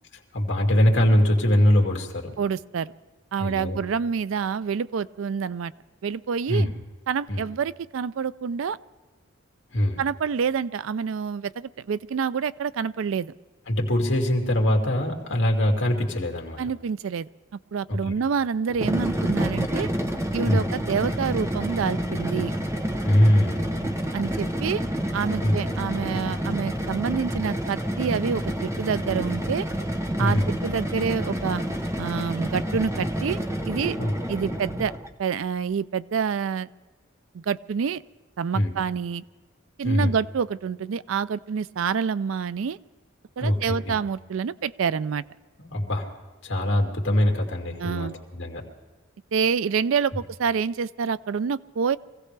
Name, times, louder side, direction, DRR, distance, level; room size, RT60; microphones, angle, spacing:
voice 1, 0.3-2.3 3.4-3.8 6.5-6.7 7.3-7.4 9.7-10.0 13.7-16.6 17.9-18.1 20.4-20.7 23.0-23.6 25.4-25.7 30.2-30.5 34.0-34.1 38.5-38.7 39.8-40.1 43.4-44.0 45.6-46.1 46.4-48.6, left 1 dB, 65° left, 1 dB, 2.4 m, -22 dB
voice 2, 2.4-2.9 3.3-5.7 6.0-6.7 7.1-8.8 10.0-13.3 16.6-17.3 17.7-19.9 20.3-22.5 24.1-24.8 25.1-29.7 30.2-31.6 32.0-33.4 33.7-34.0 34.3-34.9 35.2-36.7 37.3-38.0 38.4-39.2 39.8-42.8 43.4-45.2 47.8-48.2 49.3-52.0, right 6 dB, 75° right, 17 dB, 0.4 m, -27 dB
sound 1, 18.7-35.1, equal, 15° right, 0.8 m, -28 dB
24.5 x 16.0 x 3.3 m, 1.3 s
head